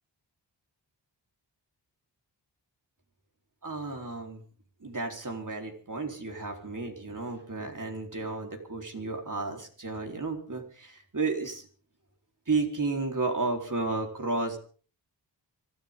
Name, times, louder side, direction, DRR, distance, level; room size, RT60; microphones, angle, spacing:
voice 1, 3.6-4.4 4.8-11.7 12.5-14.6, right 3 dB, 45° right, 3 dB, 4.2 m, -32 dB
25.0 x 14.5 x 3.8 m, 0.41 s
cardioid pair, 55°, 45 cm